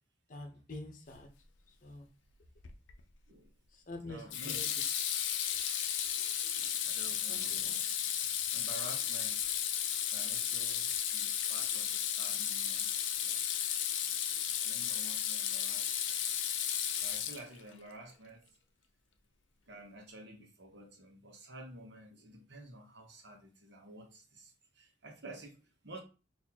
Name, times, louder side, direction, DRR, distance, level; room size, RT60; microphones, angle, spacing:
voice 1, 0.3-1.3 1.7-2.1 3.7-4.7 7.3-7.8 14.0-14.4, left 2 dB, 45° left, 0.7 m, -47 dB
Water tap faucet / Sink (filling or washing), 2.6-3.0 4.3-17.7, left 9 dB, 85° left, 0.5 m, -34 dB
voice 2, 4.0-4.7 6.3-7.8 8.5-9.5 10.1-13.4 14.6-16.2 17.0-18.6 19.6-26.0, right 1 dB, 65° right, 1.0 m, -51 dB
4.1 x 2.6 x 2.8 m
head